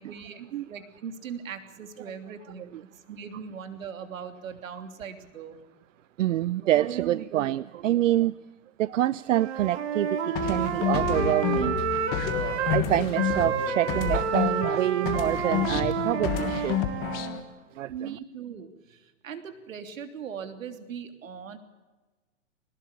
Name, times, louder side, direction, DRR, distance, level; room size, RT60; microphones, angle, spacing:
voice 1, 0.0-0.4 0.7-2.7 3.1-5.6 17.9-21.6, right 7 dB, 90° right, 8 dB, 3.2 m, -40 dB
voice 2, 6.2-8.3 8.8-11.9 12.7-16.8 17.8-18.2, right 13 dB, 70° right, 19 dB, 0.7 m, -26 dB
Wind instrument woodwind instrument, 9.3-12.8 13.1-17.4, right 7 dB, 55° right, 2.8 m, -30 dB
sound 1, 10.4-14.8 15.1-17.4, left 11 dB, 25° left, 1.4 m, -29 dB
21.5 x 19.5 x 8.6 m, 1.2 s
hypercardioid pair, 170°, 39 cm